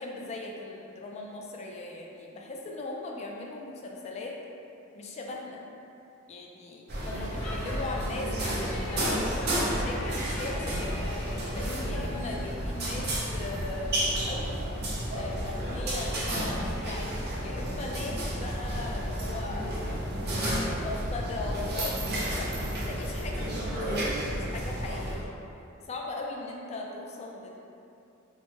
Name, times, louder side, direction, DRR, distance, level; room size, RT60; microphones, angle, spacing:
voice 1, 0.0-4.3 4.9-5.6 6.3-14.5 15.1-20.3 20.5-25.3 25.8-27.6, left 2 dB, 30° left, -1 dB, 0.3 m, -39 dB
sound 1, 6.9-25.2, right 1 dB, 50° right, 0.6 m, -31 dB
Speech / Shout / Subway metro underground, 7.1-12.3, left 1 dB, 85° left, 0.5 m, -39 dB
3.0 x 2.0 x 3.1 m, 2.7 s
head